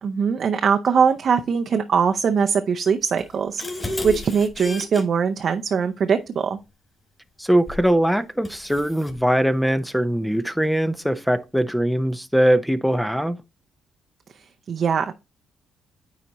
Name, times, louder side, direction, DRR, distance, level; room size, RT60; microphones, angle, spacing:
voice 1, 0.0-6.6 14.7-15.1, right 6 dB, 55° right, 0.6 m, -21 dB
sound 1, 3.2-5.0 7.7-7.9 8.4-9.2, left 2 dB, 20° left, 2.9 m, -32 dB
voice 2, 7.4-13.4, right 1 dB, ahead, 0.5 m, -21 dB
9.5 x 4.1 x 3.0 m
cardioid pair, 90°, 0 cm